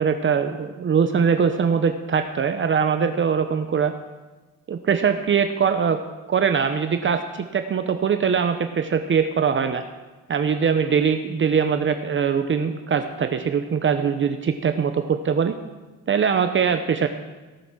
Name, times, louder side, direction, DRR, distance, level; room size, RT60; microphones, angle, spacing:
voice 1, 0.0-3.9 4.7-6.0 6.3-9.8 10.3-15.5 16.1-17.1, right 6 dB, 40° right, 8 dB, 0.8 m, -22 dB
17.5 x 6.9 x 6.2 m, 1.2 s
cardioid pair, 90°, 30 cm